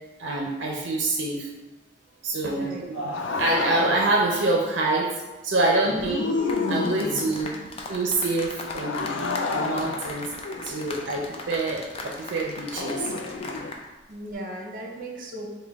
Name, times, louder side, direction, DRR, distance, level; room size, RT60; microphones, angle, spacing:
voice 1, 0.2-1.5 2.2-5.1 5.4-6.2 6.7-7.6 7.9-10.3 10.6-13.1, right 2 dB, 80° right, -1 dB, 0.5 m, -26 dB
voice 2, 2.4-2.9 5.9-6.2 14.1-15.5, right 1 dB, 50° right, 0 dB, 0.8 m, -36 dB
sound 1, 2.9-4.4 5.8-7.5 8.7-11.3 12.7-13.7, left 3 dB, 90° left, 0.4 m, -30 dB
sound 2, 6.5-13.8 14.1-14.3, left 2 dB, 30° left, 0.4 m, -38 dB
5.0 x 2.2 x 3.4 m, 1.1 s
head